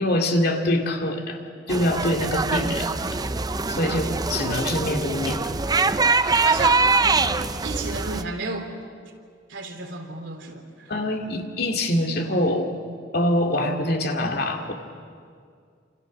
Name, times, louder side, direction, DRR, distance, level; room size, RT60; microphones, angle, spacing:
voice 1, 0.0-1.4 1.7-3.2 3.8-5.6 10.9-12.7 13.1-14.7, left 1 dB, 55° left, 3 dB, 2.5 m, -24 dB
sound 1, 1.7-8.2, right 3 dB, 20° right, 0.6 m, -23 dB
voice 2, 3.6-4.0 6.4-8.7 9.5-10.9, right 3 dB, 75° right, 3 dB, 3.3 m, -33 dB
28.0 x 27.5 x 6.4 m, 2.2 s
head